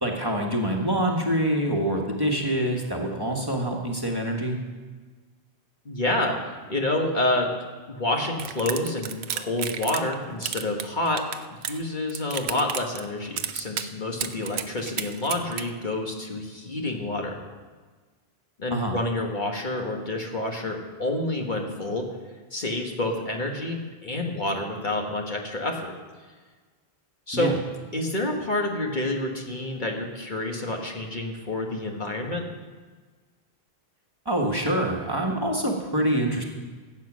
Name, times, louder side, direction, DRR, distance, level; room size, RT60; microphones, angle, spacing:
voice 1, 0.0-4.6 18.7-19.0 27.3-27.6 34.2-36.4, right 1 dB, 20° right, -1 dB, 1.5 m, -25 dB
voice 2, 5.8-6.4 6.7-7.5 7.9-11.2 11.6-17.4 18.6-22.1 22.5-25.9 27.3-27.5 27.9-32.5, left 2 dB, 50° left, 1 dB, 1.5 m, -28 dB
sound 1, 8.4-10.1 10.4-11.8 12.1-13.1 13.4-13.9 14.2-15.6, right 8 dB, 80° right, 1.0 m, -31 dB
15.0 x 8.3 x 6.2 m, 1.4 s
omnidirectional pair, 1.1 m